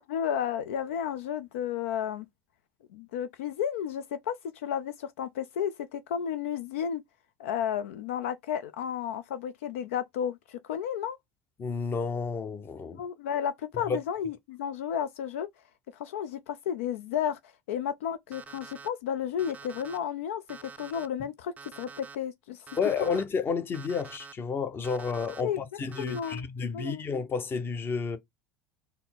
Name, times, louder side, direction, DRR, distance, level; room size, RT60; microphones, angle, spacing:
voice 1, 0.0-2.3 2.9-7.0 7.4-11.2 12.9-15.5 15.9-17.4 17.7-22.7 23.0-23.1 25.4-25.6 26.0-26.4 26.7-27.0, left 9 dB, 80° left, 0.4 m, -32 dB
voice 2, 11.6-13.0 13.9-14.0 22.8-28.2, left 5 dB, 35° left, 0.7 m, -31 dB
Alarm, 18.3-18.9 19.4-20.0 20.5-21.1 21.6-22.2 22.7-23.2 23.7-24.3 24.8-25.4 25.9-26.4, right 5 dB, 20° right, 0.4 m, -47 dB
4.1 x 2.0 x 3.9 m
hypercardioid pair, 85°, 7 cm